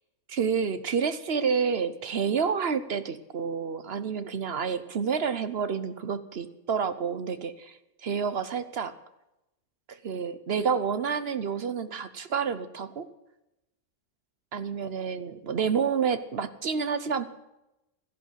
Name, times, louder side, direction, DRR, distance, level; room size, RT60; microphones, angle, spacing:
voice 1, 0.3-8.9 9.9-13.1 14.5-17.3, right 6 dB, 55° right, 13 dB, 1.0 m, -29 dB
14.0 x 11.0 x 8.2 m, 0.91 s
omnidirectional pair, 1.3 m